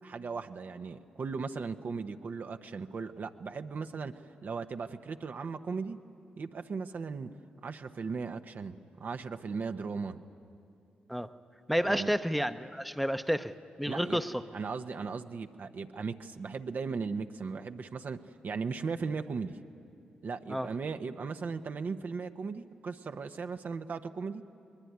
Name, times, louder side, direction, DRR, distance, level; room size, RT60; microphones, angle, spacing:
voice 1, 0.0-6.0 6.4-7.3 7.6-10.2 11.8-12.1 13.9-14.2 14.5-18.2 18.4-19.6 20.2-24.4, right 5 dB, 60° right, 7 dB, 0.9 m, -37 dB
voice 2, 11.7-13.5 13.8-14.3 20.5-20.7, equal, ahead, 10 dB, 0.9 m, -30 dB
22.0 x 21.0 x 9.5 m, 2.6 s
supercardioid pair, 45°, 4 cm